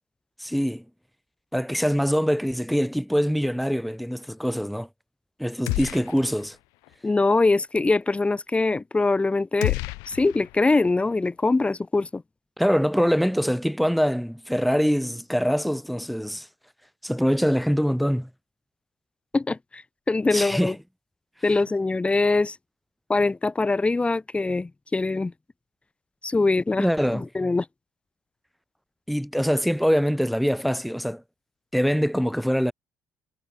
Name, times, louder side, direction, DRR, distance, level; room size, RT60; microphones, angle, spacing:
voice 1, 0.4-0.8 1.5-4.9 5.4-6.6 12.6-16.5 17.0-18.3 20.3-20.7 26.8-27.2 29.1-31.2 31.7-32.7, equal, ahead, 1.2 m, -24 dB
sound 1, 5.7-6.5 6.8-6.9 9.6-10.9, left 27 dB, 80° left, 0.6 m, -30 dB
voice 2, 7.0-9.8 10.1-12.2 19.3-20.8 21.4-22.6 23.1-25.3 26.2-26.9 27.1-27.6, left 3 dB, 20° left, 0.7 m, -23 dB
hypercardioid pair, 60°, 6 cm